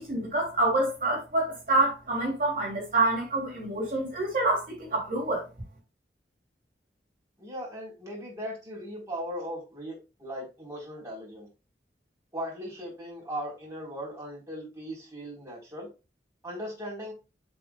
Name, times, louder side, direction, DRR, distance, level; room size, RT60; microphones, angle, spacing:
voice 1, 0.0-5.4, right 2 dB, 50° right, 3.1 m, -27 dB
voice 2, 7.4-11.5 12.3-15.9 16.4-17.1, equal, 15° right, 4.3 m, -38 dB
7.8 x 6.0 x 2.4 m
head